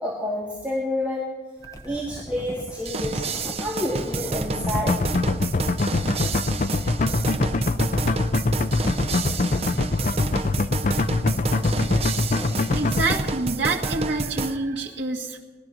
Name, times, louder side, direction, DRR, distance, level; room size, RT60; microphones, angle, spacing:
voice 1, 0.0-1.2 1.8-3.3 3.6-5.0, left 1 dB, 10° right, -5 dB, 2.3 m, -28 dB
sound 1, 1.6-12.9, left 1 dB, 20° left, 1.1 m, -40 dB
voice 2, 1.7-2.2 12.7-15.4, right 3 dB, 85° right, -3 dB, 1.9 m, -28 dB
sound 2, 2.9-14.6, right 3 dB, 35° right, 0.6 m, -29 dB
sound 3, 4.6-13.1, left 3 dB, 45° left, 0.5 m, -23 dB
19.5 x 12.0 x 6.2 m, 1.3 s
head